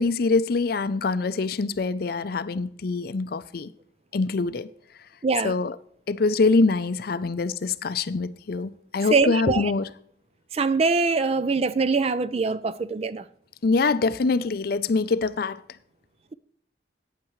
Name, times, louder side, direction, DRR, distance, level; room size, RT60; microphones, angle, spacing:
voice 1, 0.0-3.7 4.1-4.7 5.4-5.7 6.1-9.9 13.6-15.6, left 3 dB, 55° left, 0.5 m, -24 dB
voice 2, 5.2-5.6 9.1-9.7 10.5-13.2, right 4 dB, 35° right, 0.4 m, -23 dB
14.5 x 8.9 x 3.1 m
head